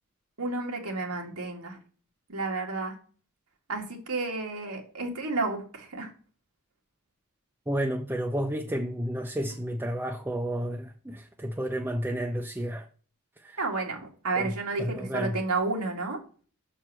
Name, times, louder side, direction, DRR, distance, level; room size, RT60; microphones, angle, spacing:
voice 1, 0.4-1.8 2.3-2.9 3.7-6.1 13.6-16.2, right 3 dB, 80° right, 2.0 m, -31 dB
voice 2, 7.7-12.8 13.5-13.6 14.4-14.5 14.8-15.3, equal, 10° right, 0.6 m, -31 dB
6.5 x 4.5 x 6.1 m
head